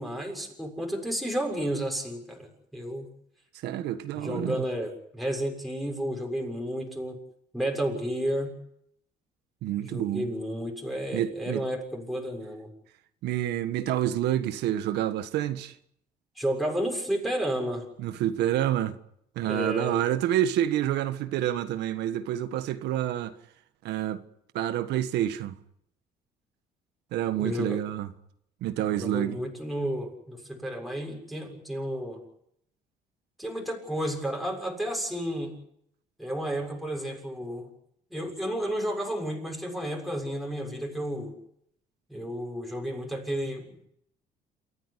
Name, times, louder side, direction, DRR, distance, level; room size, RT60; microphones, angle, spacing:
voice 1, 0.0-3.1 4.1-7.2 7.5-8.5 9.8-12.7 16.4-17.8 19.4-20.0 27.4-27.8 28.9-32.2 33.4-35.6 36.2-37.7 38.1-41.3 42.1-43.9, equal, ahead, 6.8 m, -32 dB
voice 2, 3.6-4.6 9.6-10.3 11.1-11.6 13.2-15.7 18.0-19.0 19.3-23.3 23.8-24.2 24.5-25.6 27.1-28.1 28.6-29.4, right 12 dB, 80° right, 1.7 m, -28 dB
28.0 x 14.0 x 10.0 m
cardioid pair, 110°, 17 cm